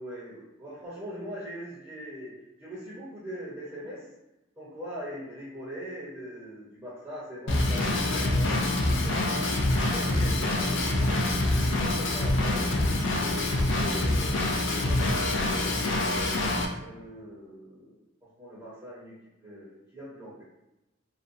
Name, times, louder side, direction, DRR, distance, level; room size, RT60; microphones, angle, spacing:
voice 1, 0.0-2.3 2.6-4.1 4.6-9.5 9.8-12.9 13.6-16.2 16.8-18.0 18.4-19.1 19.4-20.4, equal, 20° right, -9 dB, 0.7 m, -41 dB
Drum kit / Drum, 7.5-16.7, left 2 dB, 65° left, 0.4 m, -26 dB
2.6 x 2.2 x 2.6 m, 0.97 s
head